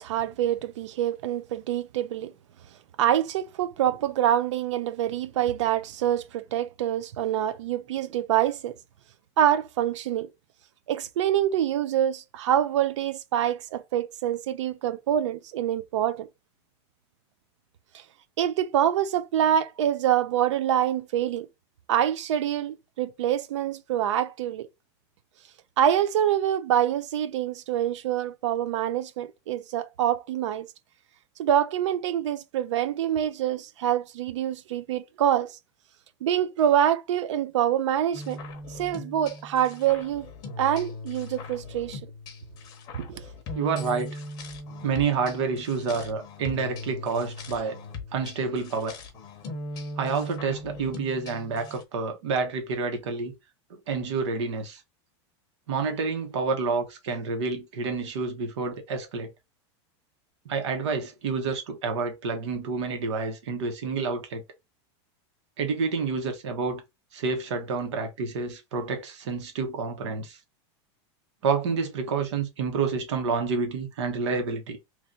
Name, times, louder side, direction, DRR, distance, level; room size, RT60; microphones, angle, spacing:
voice 1, 0.0-2.3 3.0-8.7 9.4-10.3 10.9-16.3 17.9-18.0 18.4-21.5 21.9-24.7 25.8-30.7 31.4-35.6 36.2-38.4 38.7-40.3 40.6-42.0 42.9-43.2, right 10 dB, 90° right, 0.6 m, -26 dB
sound 1, 38.1-51.8, left 2 dB, 25° left, 0.8 m, -39 dB
voice 2, 43.5-44.2 44.8-47.8 48.1-48.9 50.0-53.3 53.7-54.8 55.7-59.3 60.4-64.4 65.6-66.8 67.1-70.4 71.4-74.8, right 4 dB, 75° right, 1.3 m, -29 dB
3.1 x 2.6 x 3.9 m
supercardioid pair, 170°, 15 cm